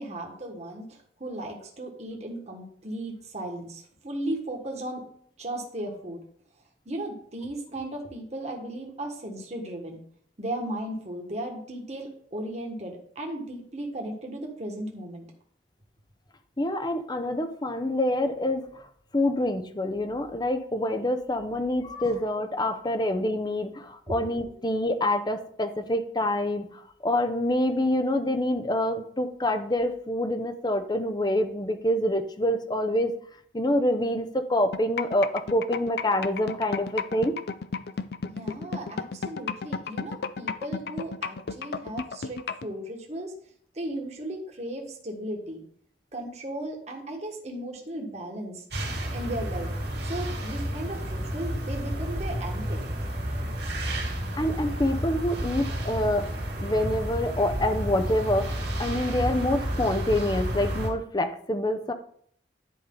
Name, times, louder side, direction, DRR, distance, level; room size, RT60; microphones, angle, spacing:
voice 1, 0.0-5.0 5.4-6.2 6.8-10.0 10.4-15.2 24.1-24.5 38.3-43.3 43.7-45.6 46.1-48.6 49.1-49.7 50.0-52.8, right 1 dB, 40° right, 1 dB, 1.6 m, -36 dB
voice 2, 16.6-18.8 19.1-33.1 33.5-37.4 54.4-56.3 56.6-61.9, left 1 dB, 25° left, 8 dB, 0.7 m, -26 dB
sound 1, 34.7-42.7, left 5 dB, 60° left, 0.5 m, -32 dB
sound 2, 48.7-60.9, equal, 65° right, 2.6 m, -31 dB
11.0 x 4.9 x 3.9 m, 0.62 s
head